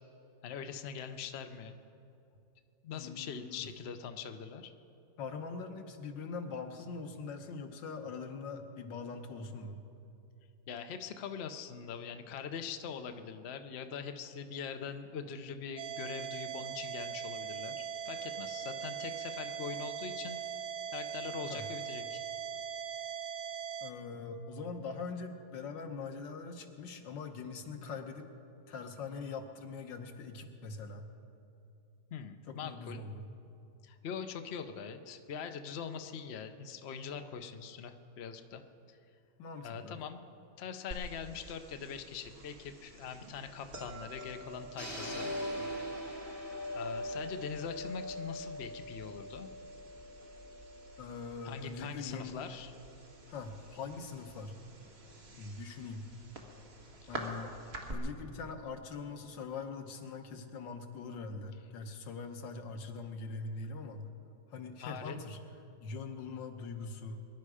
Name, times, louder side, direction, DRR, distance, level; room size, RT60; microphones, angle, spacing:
voice 1, 0.4-1.8 2.8-4.7 10.7-20.4 20.9-22.2 32.1-33.0 33.8-38.6 38.9-39.0 39.6-40.2 40.6-45.3 46.7-49.5 51.4-52.7 57.0-57.1 64.8-65.2, left 7 dB, 50° left, 7 dB, 0.8 m, -42 dB
voice 2, 2.9-3.7 5.2-9.8 21.4-21.7 23.8-28.3 28.7-31.1 32.5-33.3 39.4-40.0 45.6-45.7 51.0-52.4 53.3-54.6 55.4-56.1 57.1-57.6 57.9-64.1 64.5-65.4 65.8-67.3, left 4 dB, 90° left, 6 dB, 1.8 m, -42 dB
sound 1, 15.8-23.9, right 8 dB, 65° right, 0.7 m, -40 dB
sound 2, 40.9-57.9, equal, 35° right, 1.7 m, -45 dB
sound 3, 44.8-48.8, right 1 dB, 15° left, 2.1 m, -45 dB
23.0 x 11.0 x 4.9 m, 2.6 s
omnidirectional pair, 1.9 m